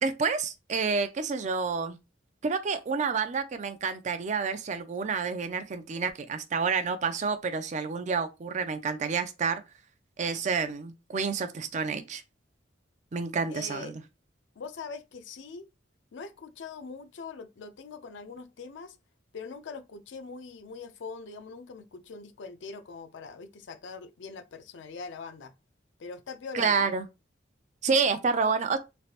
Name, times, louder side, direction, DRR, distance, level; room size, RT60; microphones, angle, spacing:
voice 1, 0.0-2.0 2.4-9.6 10.2-12.2 13.1-14.0 26.5-27.1 27.8-28.8, right 5 dB, 40° right, 0.4 m, -29 dB
voice 2, 13.5-13.9 14.6-15.7 16.1-19.0 19.3-25.5 26.0-26.9, left 4 dB, 75° left, 0.5 m, -42 dB
3.2 x 2.8 x 2.4 m
head